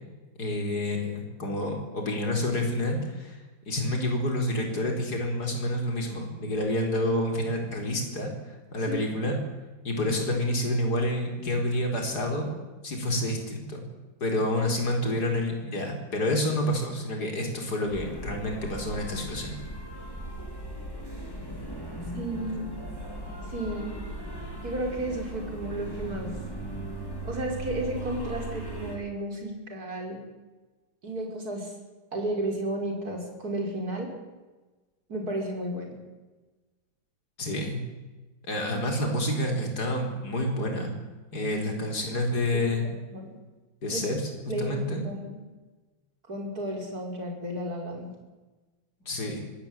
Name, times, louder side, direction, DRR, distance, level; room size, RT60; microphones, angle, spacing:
voice 1, 0.4-3.4 3.7-8.3 8.7-9.4 9.8-12.5 12.8-13.8 14.2-19.6 37.4-37.8 38.5-40.9 41.3-42.9 43.8-44.2 44.6-45.0 49.1-49.4, left 1 dB, 55° left, 2 dB, 5.0 m, -28 dB
sound 1, 17.9-29.0, right 1 dB, 10° left, 4.9 m, -38 dB
voice 2, 22.2-22.7 23.5-23.9 24.6-26.3 27.2-30.2 31.0-31.7 32.1-34.1 35.1-36.0 42.1-42.2 42.5-43.3 43.9-44.0 44.5-45.4 46.3-48.1, right 1 dB, 50° right, 1 dB, 5.7 m, -33 dB
24.5 x 17.5 x 9.0 m, 1.2 s
omnidirectional pair, 2.0 m